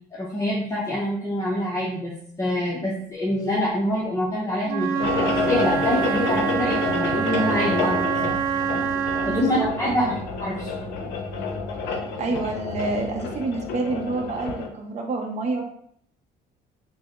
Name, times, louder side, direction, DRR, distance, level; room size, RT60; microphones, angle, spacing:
voice 1, 0.1-2.1 2.4-8.3 9.2-10.7, left 1 dB, 15° left, -5 dB, 0.6 m, -26 dB
Wind instrument woodwind instrument, 4.7-9.6, right 6 dB, 80° right, 0.4 m, -26 dB
sound 1, 5.0-14.7, left 4 dB, 85° left, 0.5 m, -29 dB
voice 2, 9.3-10.1 12.2-15.6, right 3 dB, 40° right, 1 dB, 0.6 m, -28 dB
3.2 x 2.0 x 3.5 m, 0.65 s
cardioid pair, 110°, 17 cm